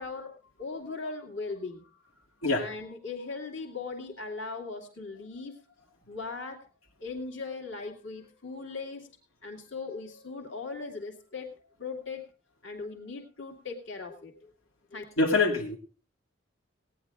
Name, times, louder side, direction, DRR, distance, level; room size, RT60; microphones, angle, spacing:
voice 1, 0.0-2.0 2.5-5.6 6.1-6.6 7.0-9.1 9.4-11.5 11.8-12.2 12.6-14.5 14.9-15.0, left 4 dB, 60° left, 3 dB, 2.4 m, -39 dB
voice 2, 15.2-15.8, left 3 dB, 85° left, -1 dB, 2.0 m, -24 dB
17.5 x 10.0 x 3.5 m, 0.37 s
head